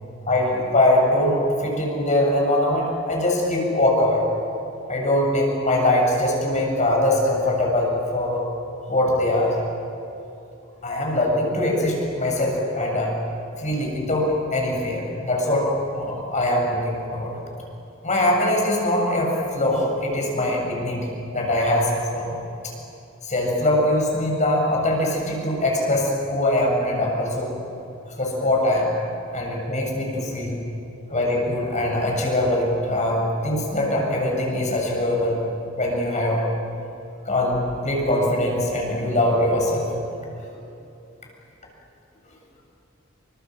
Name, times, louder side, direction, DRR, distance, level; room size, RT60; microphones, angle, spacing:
voice 1, 0.3-4.2 4.9-8.4 8.9-9.5 10.8-13.1 13.6-15.7 15.9-17.3 18.0-22.3 23.2-27.5 28.2-28.9 29.3-30.5 31.1-35.4 35.8-36.4 37.3-39.9, left 1 dB, 35° left, -1 dB, 7.5 m, -22 dB
28.0 x 25.5 x 7.8 m, 2.8 s
head